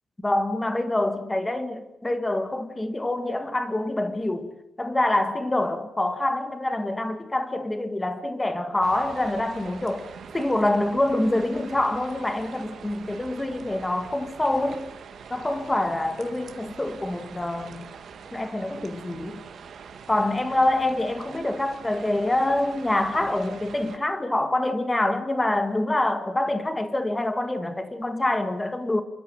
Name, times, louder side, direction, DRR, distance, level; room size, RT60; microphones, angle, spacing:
voice 1, 0.2-14.9 15.3-17.9 18.3-19.4 20.1-29.0, left 1 dB, 15° left, 1.8 m, -26 dB
sound 1, 8.8-24.0, right 6 dB, 65° right, 2.0 m, -44 dB
28.0 x 13.0 x 8.9 m
wide cardioid pair, 165°, 0 cm